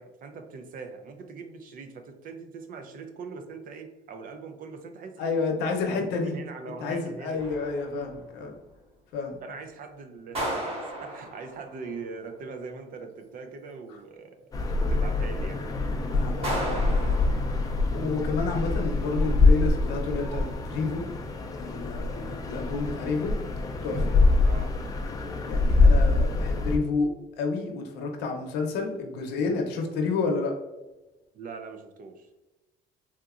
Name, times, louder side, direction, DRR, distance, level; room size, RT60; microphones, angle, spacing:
voice 1, 0.0-5.3 5.9-7.4 9.4-10.5 10.8-14.4 14.8-15.7 24.4-24.7 31.3-32.3, right 4 dB, 55° right, 6 dB, 0.5 m, -41 dB
voice 2, 5.2-6.4 6.8-8.5 9.1-9.4 16.1-17.2 17.9-21.1 21.6-23.3 23.8-24.1 25.5-27.1 27.4-30.5, left 4 dB, 85° left, 2 dB, 0.7 m, -30 dB
sound 1, 7.4-8.3 10.3-11.9 16.4-18.0, right 1 dB, 35° right, 1.5 m, -34 dB
sound 2, 14.5-26.8, left 3 dB, 20° left, 0.4 m, -24 dB
3.5 x 2.8 x 2.4 m, 1.1 s
cardioid pair, 110°, 17 cm